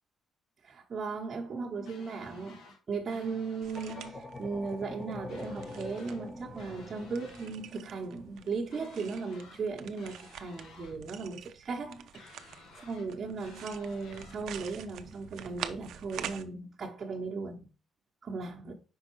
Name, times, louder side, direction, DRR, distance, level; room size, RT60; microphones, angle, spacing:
voice 1, 0.6-17.7 18.2-18.7, right 4 dB, 40° right, 1.0 m, -37 dB
sound 1, 1.9-2.8 3.1-4.1 5.3-6.2 6.6-7.5 8.7-9.6 10.0-11.0 12.1-13.1 13.4-14.4, left 3 dB, 80° left, 1.5 m, -55 dB
sound 2, 3.6-16.4, right 10 dB, 80° right, 0.5 m, -47 dB
sound 3, 3.7-8.7, left 2 dB, 25° left, 1.0 m, -45 dB
5.5 x 3.7 x 4.6 m
cardioid pair, 90°, 0 cm